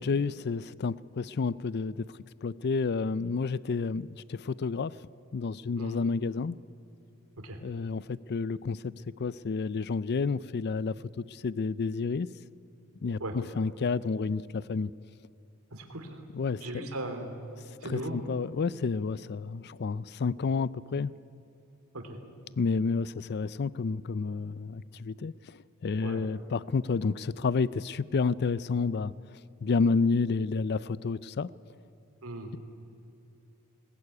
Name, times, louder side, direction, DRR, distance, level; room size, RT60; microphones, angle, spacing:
voice 1, 0.0-2.1 2.4-4.9 5.3-6.6 7.6-8.0 8.3-8.9 9.2-12.3 13.0-14.9 16.3-16.9 17.8-21.1 22.6-25.3 25.8-29.1 29.6-31.5, left 4 dB, 50° left, 20 dB, 0.4 m, -30 dB
voice 2, 15.7-16.2 16.6-17.3 17.8-18.2 22.1-22.2 26.0-26.2 32.2-32.5, right 1 dB, 70° right, 5 dB, 3.2 m, -37 dB
20.0 x 20.0 x 9.7 m, 2.8 s
head